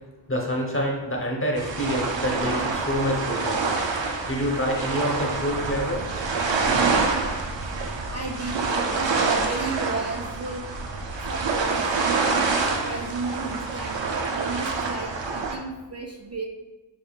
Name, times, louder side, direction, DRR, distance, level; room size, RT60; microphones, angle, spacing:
voice 1, 0.3-3.6 4.3-6.0, equal, 30° left, -1 dB, 0.9 m, -26 dB
sound 1, 1.6-15.6, right 4 dB, 80° right, 0.6 m, -26 dB
voice 2, 8.1-8.6 8.9-10.6 11.3-12.1 12.7-16.4, right 3 dB, 35° right, 1 dB, 0.4 m, -33 dB
5.4 x 3.5 x 2.3 m, 1.1 s
wide cardioid pair, 70°, 44 cm